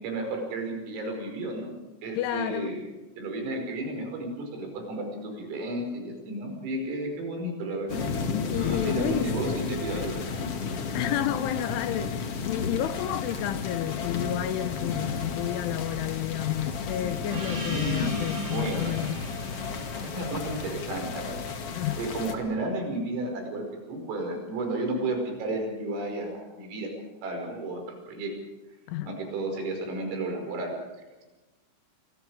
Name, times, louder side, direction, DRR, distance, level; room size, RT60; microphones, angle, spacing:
voice 1, 0.0-1.7 2.0-2.8 3.2-8.0 8.7-10.5 17.7-19.0 20.0-21.4 22.0-26.9 27.2-28.3 29.1-30.7, right 2 dB, 80° right, 7.9 m, -32 dB
voice 2, 2.2-2.8 8.5-9.3 10.9-19.2 21.8-22.0 28.9-29.1, left 13 dB, 75° left, 3.2 m, -30 dB
sound 1, 7.9-22.3, left 5 dB, 55° left, 1.7 m, -33 dB
Breathing, 8.5-10.3, equal, 10° left, 1.3 m, -44 dB
Gong, 17.3-22.4, right 2 dB, 55° right, 10.0 m, -41 dB
29.0 x 24.0 x 4.9 m
omnidirectional pair, 5.9 m